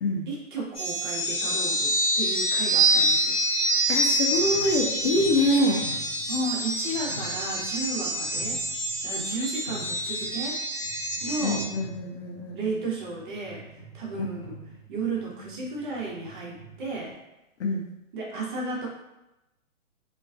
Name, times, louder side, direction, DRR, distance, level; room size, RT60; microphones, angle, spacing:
voice 1, 0.3-3.4 6.3-8.6 9.0-10.6 11.2-11.7 12.5-13.6 13.9-14.5 14.9-17.2 18.1-18.9, right 3 dB, 35° right, -3 dB, 0.6 m, -33 dB
sound 1, 0.7-11.6, right 1 dB, 15° left, 0.9 m, -26 dB
voice 2, 3.9-5.9 11.4-12.8 14.2-14.3 17.6-17.9, left 1 dB, 55° left, 1 dB, 0.5 m, -25 dB
sound 2, 4.3-9.4 9.7-10.5 10.8-17.1, right 2 dB, 85° left, 1.2 m, -46 dB
2.4 x 2.3 x 2.3 m, 0.95 s
hypercardioid pair, 140°, 41 cm